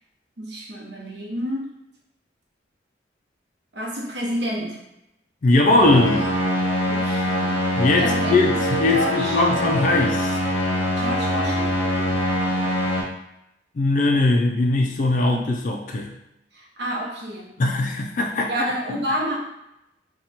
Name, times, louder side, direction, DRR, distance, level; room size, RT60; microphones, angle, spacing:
voice 1, 0.4-1.7 3.7-4.8 6.9-7.6 8.0-8.6 8.9-9.4 11.0-12.1 15.3-15.6 16.5-17.6 18.5-19.4, equal, 70° right, -3 dB, 0.9 m, -29 dB
voice 2, 5.4-6.3 7.8-10.4 13.8-16.1 17.6-18.7, left 2 dB, 45° left, 2 dB, 0.3 m, -20 dB
sound 1, 5.7-13.0, equal, 80° left, 0.8 m, -23 dB
2.9 x 2.2 x 4.1 m, 0.87 s
head